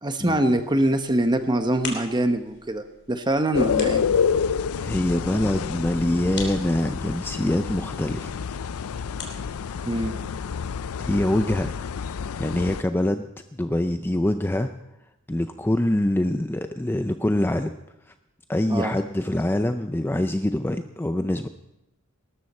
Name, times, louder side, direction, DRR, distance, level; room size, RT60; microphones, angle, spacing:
voice 1, 0.0-4.1 9.8-10.2 18.7-18.9, right 1 dB, 20° right, 8 dB, 1.0 m, -24 dB
sound 1, 0.5-10.7, left 4 dB, 55° left, 3.1 m, -43 dB
sound 2, 3.5-12.8, left 6 dB, 85° left, 0.4 m, -28 dB
voice 2, 4.8-8.3 11.0-11.9 12.4-14.7 15.3-17.7 18.5-21.5, left 1 dB, 10° left, 8 dB, 0.4 m, -24 dB
19.5 x 13.0 x 4.3 m, 0.84 s
head